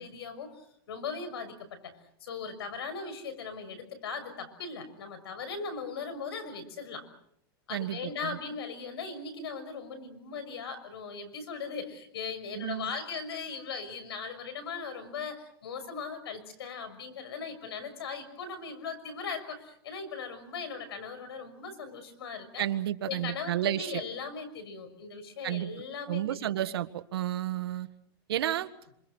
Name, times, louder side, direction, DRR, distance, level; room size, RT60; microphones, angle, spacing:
voice 1, 0.0-1.9 2.2-7.0 7.7-22.6 23.1-26.5, left 5 dB, 90° left, 9 dB, 6.4 m, -39 dB
voice 2, 7.7-8.4 12.5-12.9 22.6-24.0 25.4-25.7 26.1-27.9 28.3-28.7, right 12 dB, 85° right, 11 dB, 1.6 m, -31 dB
27.0 x 26.5 x 6.3 m, 0.71 s
supercardioid pair, 140°, 13 cm